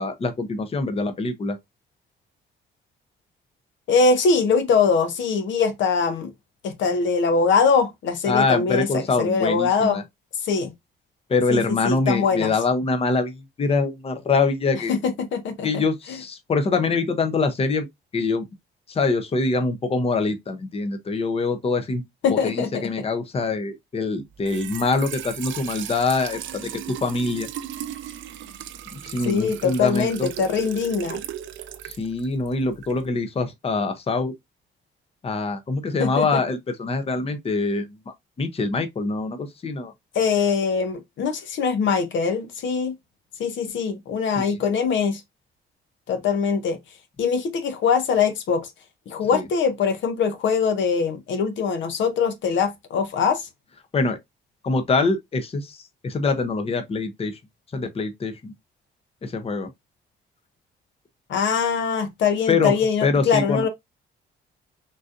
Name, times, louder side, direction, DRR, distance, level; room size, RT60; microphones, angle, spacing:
voice 1, 0.0-1.6 8.3-10.0 11.3-14.9 15.6-17.9 18.1-18.4 18.9-22.0 22.3-27.5 28.9-30.3 31.8-34.3 35.2-37.9 38.4-39.9 44.3-44.6 49.3-49.4 53.9-54.2 54.6-57.4 57.7-58.5 59.2-59.7 62.5-62.7 63.0-63.7, left 3 dB, 30° left, 0.6 m, -24 dB
voice 2, 3.9-6.3 6.6-10.0 10.4-10.7 11.5-11.6 11.8-12.5 14.9-15.8 22.2-22.9 29.3-31.2 36.0-36.3 40.1-42.9 43.4-45.2 46.1-46.8 47.2-48.7 49.1-53.4 61.3-63.7, left 5 dB, 70° left, 0.7 m, -22 dB
Trickle dribble / Fill (with liquid), 24.3-33.1, right 11 dB, 75° right, 0.5 m, -37 dB
3.8 x 2.6 x 2.5 m
cardioid pair, 90°, 20 cm